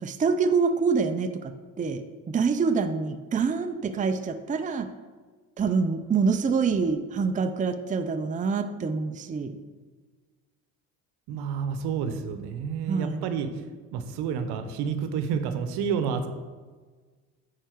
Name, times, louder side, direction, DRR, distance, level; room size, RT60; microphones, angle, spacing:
voice 1, 0.0-4.9 5.6-9.6 12.9-13.3, right 5 dB, 20° right, 8 dB, 0.5 m, -26 dB
voice 2, 11.3-13.5 13.9-16.3, right 7 dB, 70° right, 9 dB, 0.9 m, -29 dB
8.9 x 4.7 x 4.6 m, 1.4 s
hypercardioid pair, 65°, 41 cm